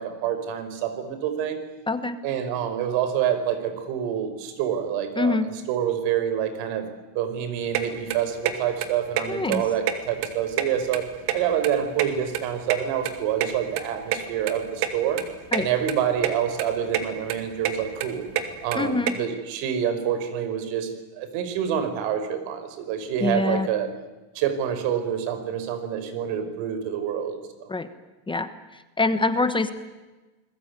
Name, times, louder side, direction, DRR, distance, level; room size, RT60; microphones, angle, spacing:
voice 1, 0.0-1.6 2.2-5.4 5.7-6.9 7.1-11.1 11.3-15.2 15.6-18.3 18.6-23.9 24.3-27.7, right 9 dB, 90° right, 10 dB, 5.3 m, -27 dB
voice 2, 1.9-2.2 5.2-5.5 9.3-9.6 15.5-15.7 18.7-19.1 23.2-23.7 27.7-27.9 28.3-28.5 29.0-29.7, left 3 dB, 10° left, 10 dB, 1.2 m, -24 dB
sound 1, 7.7-7.8 8.1-8.5 8.8-8.9 9.2-9.3 9.5-10.3 10.5-11.7 12.0-13.5 13.8-13.9 14.1-14.2 14.5-14.6 14.8-14.9 15.2-15.6 15.9-16.3 16.6-17.0 17.3-19.1, right 12 dB, 65° right, 3.1 m, -26 dB
29.5 x 21.0 x 9.6 m, 1.2 s
cardioid pair, 175°, 44 cm